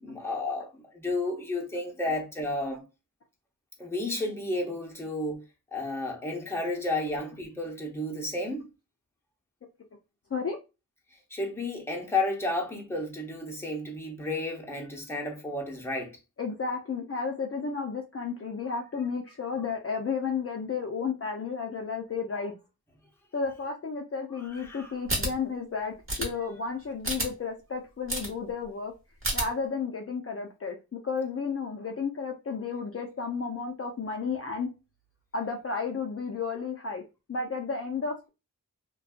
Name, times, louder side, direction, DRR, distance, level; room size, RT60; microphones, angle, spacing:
voice 1, 0.0-2.8 3.8-5.4 5.7-8.7 11.3-16.2 24.6-24.9, left 2 dB, 5° left, 0.7 m, -32 dB
voice 2, 16.4-22.5 23.3-25.9 26.2-28.9 29.3-34.7 35.3-37.0 37.3-38.3, left 5 dB, 45° left, 0.5 m, -32 dB
sound 1, 25.1-25.3 26.1-26.3 27.0-27.3 28.1-28.3 29.2-29.4, right 1 dB, 40° right, 1.0 m, -28 dB
2.6 x 2.3 x 2.4 m
wide cardioid pair, 70°, 34 cm